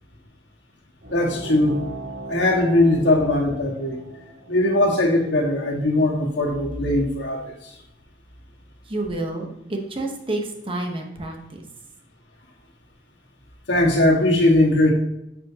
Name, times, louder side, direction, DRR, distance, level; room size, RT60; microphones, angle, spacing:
sound 1, 1.0-6.1, right 1 dB, 85° right, 3.0 m, -38 dB
voice 1, 1.1-1.8 2.3-4.0 4.5-7.7 13.7-14.9, left 1 dB, 85° left, -1 dB, 1.8 m, -20 dB
voice 2, 8.8-11.6, right 2 dB, 30° right, 2 dB, 1.1 m, -29 dB
9.7 x 5.4 x 2.9 m, 0.86 s
head